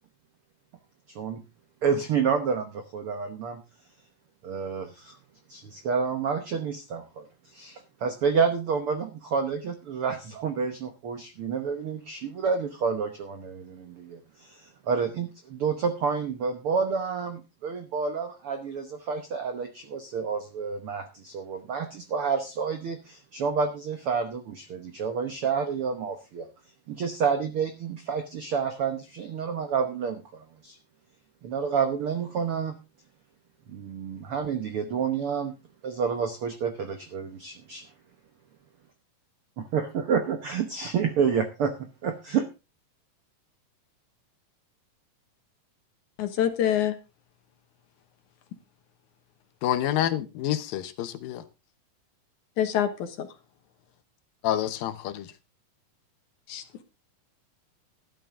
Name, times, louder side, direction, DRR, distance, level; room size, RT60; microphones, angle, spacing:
voice 1, 1.8-3.6 4.4-5.2 5.5-7.2 7.5-26.5 26.9-30.8 31.4-32.8 33.7-35.5 35.8-37.9 39.7-42.5, right 6 dB, 75° right, 1.3 m, -29 dB
voice 2, 46.2-47.0 52.6-53.3 56.5-56.8, left 10 dB, 65° left, 2.5 m, -26 dB
voice 3, 49.6-51.4 54.4-55.3, left 11 dB, 80° left, 2.8 m, -28 dB
12.5 x 11.5 x 3.7 m
omnidirectional pair, 4.1 m